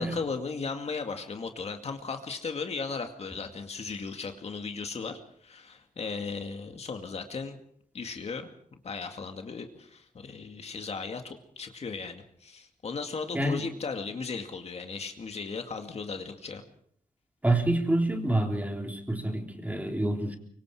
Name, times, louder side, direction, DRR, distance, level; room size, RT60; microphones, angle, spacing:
voice 1, 0.0-7.6 7.9-8.5 8.8-16.6, left 4 dB, 50° left, 5 dB, 2.2 m, -36 dB
voice 2, 13.3-13.7 17.4-20.4, right 1 dB, 10° right, 3 dB, 3.7 m, -27 dB
24.5 x 24.0 x 4.9 m, 0.65 s
wide cardioid pair, 115°, 14 cm